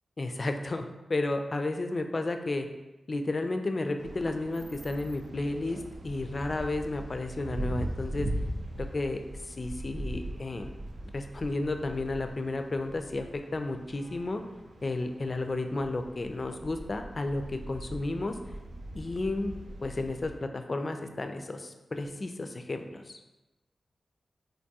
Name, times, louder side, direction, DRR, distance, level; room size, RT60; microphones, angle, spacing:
voice 1, 0.2-2.7 3.1-8.3 8.8-9.2 9.5-10.7 11.1-14.4 14.8-18.4 18.9-19.5 19.8-23.2, left 2 dB, 50° left, 6 dB, 0.3 m, -32 dB
sound 1, 4.0-20.3, right 1 dB, 80° right, 0.4 m, -40 dB
3.4 x 2.6 x 2.7 m, 1.1 s
cardioid pair, 40°, 0 cm